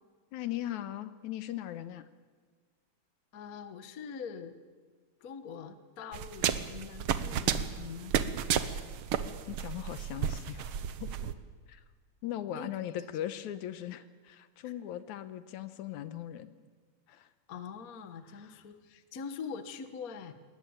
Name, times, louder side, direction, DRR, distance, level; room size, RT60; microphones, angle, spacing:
voice 1, 0.3-2.0 9.5-10.7 11.0-11.3 11.7-11.8 12.2-16.5 17.1-17.3 18.3-18.5, left 12 dB, 80° left, 12 dB, 2.3 m, -39 dB
voice 2, 3.3-4.6 5.2-8.2 12.5-12.9 14.6-14.7 17.5-20.3, left 6 dB, 45° left, 10 dB, 1.2 m, -43 dB
sound 1, 6.1-11.3, right 9 dB, 65° right, 1.3 m, -32 dB
21.5 x 19.0 x 8.8 m, 1.5 s
omnidirectional pair, 3.4 m